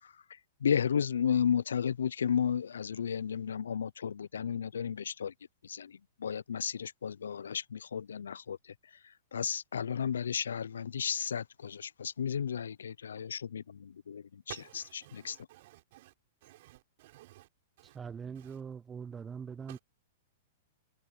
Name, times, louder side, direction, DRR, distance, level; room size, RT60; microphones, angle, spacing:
voice 1, 0.6-5.3 5.6-8.6 9.3-13.6 14.1-14.5 15.1-15.4, left 7 dB, 80° left, 0.8 m, -33 dB
voice 2, 14.5-16.1 16.4-17.5 17.8-18.0 18.3-18.6 19.7-19.8, right 17 dB, 55° right, 6.1 m, -53 dB
voice 3, 17.8-19.8, right 6 dB, 20° right, 0.4 m, -42 dB
hypercardioid pair, 110°, 0 cm